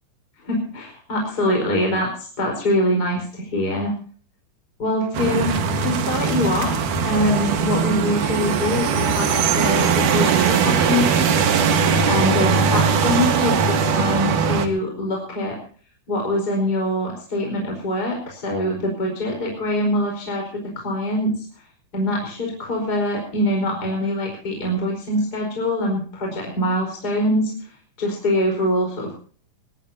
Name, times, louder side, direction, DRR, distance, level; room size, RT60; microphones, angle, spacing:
voice 1, 0.4-3.9 4.8-5.5 5.8-11.7 12.1-15.6 16.1-21.3 21.9-27.5 28.0-29.2, left 1 dB, 25° left, 0 dB, 5.0 m, -24 dB
sound 1, 5.1-14.7, right 6 dB, 65° right, 2.9 m, -20 dB
22.5 x 17.5 x 2.8 m, 0.43 s
omnidirectional pair, 4.4 m